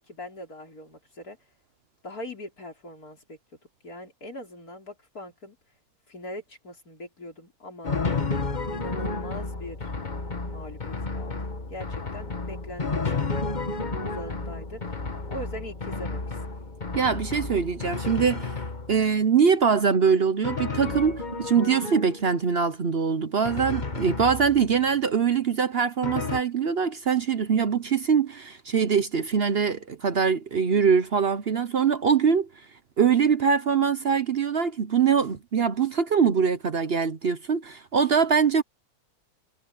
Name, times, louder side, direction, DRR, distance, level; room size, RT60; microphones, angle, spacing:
voice 1, 0.0-1.4 2.0-3.4 3.8-5.6 6.1-8.0 8.7-9.9 10.4-15.0 15.3-16.6, left 1 dB, 80° left, 5.1 m, -41 dB
Drum, 7.8-19.2 20.4-22.4 23.4-24.9 26.0-26.4, left 3 dB, 30° left, 1.7 m, -32 dB
voice 2, 16.9-18.5 18.9-32.5 33.0-38.6, right 6 dB, 50° right, 0.9 m, -23 dB
omnidirectional pair, 1.6 m